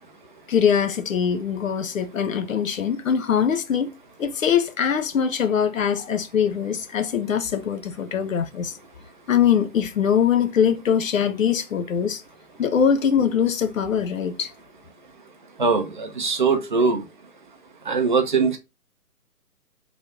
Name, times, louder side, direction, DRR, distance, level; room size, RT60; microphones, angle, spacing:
voice 1, 0.5-3.9 4.2-8.7 9.3-12.2 12.6-14.5, left 8 dB, 60° left, 0.6 m, -22 dB
voice 2, 15.6-17.0 17.9-18.6, right 4 dB, 35° right, 0.5 m, -21 dB
3.3 x 2.6 x 3.5 m
figure-of-eight pair, 135°, 46 cm